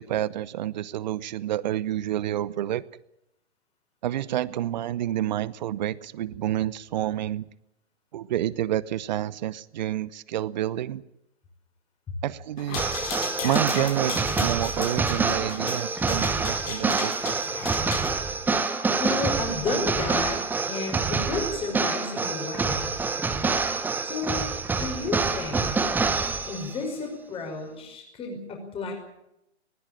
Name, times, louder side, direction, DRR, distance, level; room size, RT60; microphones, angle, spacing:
voice 1, 0.0-2.8 4.0-7.5 8.1-11.0 12.2-12.8 13.4-17.4, right 12 dB, 40° right, 20 dB, 0.9 m, -29 dB
sound 1, 12.6-18.1, left 8 dB, 35° left, 4.4 m, -36 dB
sound 2, 12.7-26.8, right 4 dB, 5° right, 1.1 m, -27 dB
voice 2, 19.0-20.4 20.7-22.9 24.0-24.4 24.7-25.7 26.5-28.9, left 3 dB, 15° left, 3 dB, 5.6 m, -32 dB
20.0 x 19.5 x 8.8 m, 0.84 s
figure-of-eight pair, 125°, 34 cm